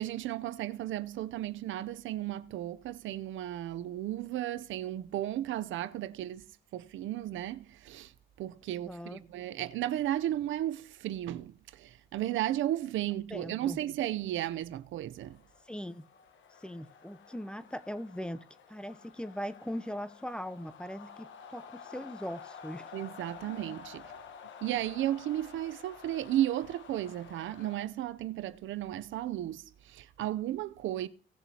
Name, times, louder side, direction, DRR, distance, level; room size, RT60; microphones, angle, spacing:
voice 1, 0.0-6.5 6.7-8.1 8.4-15.4 22.9-24.1 24.6-31.1, right 13 dB, 75° right, 0.6 m, -34 dB
voice 2, 8.8-9.2 13.3-13.8 15.7-16.0 16.6-22.9, equal, 5° left, 0.6 m, -40 dB
sound 1, 15.2-27.9, left 7 dB, 70° left, 1.2 m, -51 dB
18.0 x 7.0 x 2.8 m
cardioid pair, 90°, 20 cm